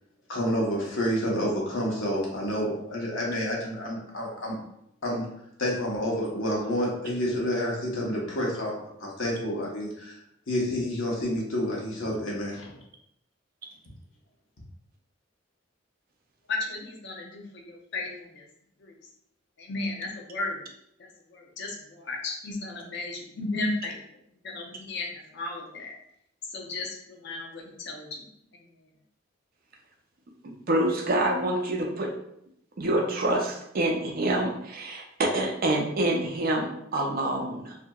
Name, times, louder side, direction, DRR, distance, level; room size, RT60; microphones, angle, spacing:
voice 1, 0.3-4.6 5.0-5.3 5.6-10.2 10.5-12.8, equal, 85° left, -3 dB, 0.9 m, -29 dB
voice 2, 16.5-18.5 18.8-19.0 19.6-20.6 21.0-24.0 24.4-25.9 26.4-28.3 28.5-28.7, left 2 dB, 60° left, 0 dB, 0.6 m, -35 dB
voice 3, 30.4-32.1 32.8-37.8, right 1 dB, 50° right, 1 dB, 0.5 m, -27 dB
2.8 x 2.6 x 2.2 m, 0.74 s
head